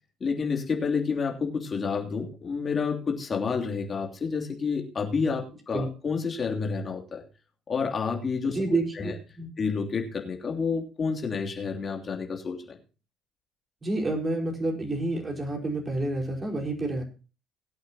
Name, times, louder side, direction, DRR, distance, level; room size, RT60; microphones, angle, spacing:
voice 1, 0.2-7.2 7.7-8.6 9.0-9.1 9.6-12.8, left 5 dB, 40° left, 1 dB, 3.0 m, -29 dB
voice 2, 8.5-9.5 13.8-17.0, right 2 dB, 30° right, 1 dB, 4.7 m, -29 dB
21.5 x 8.7 x 3.0 m, 0.34 s
hypercardioid pair, 60°, 0 cm